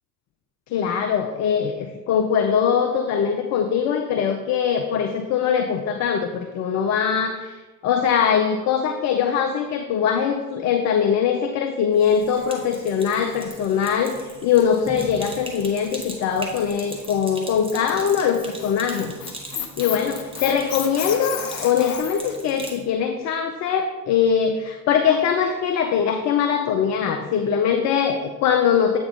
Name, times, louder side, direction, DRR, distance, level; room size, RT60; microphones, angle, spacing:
voice 1, 0.7-19.1 19.8-29.0, left 7 dB, 35° left, 5 dB, 0.5 m, -22 dB
Sink (filling or washing), 11.9-22.8, right 1 dB, 10° right, 1.1 m, -39 dB
Squeak, 18.1-22.3, left 8 dB, 80° left, 0.7 m, -32 dB
8.0 x 4.0 x 3.6 m, 1.2 s
figure-of-eight pair, 65°, 48 cm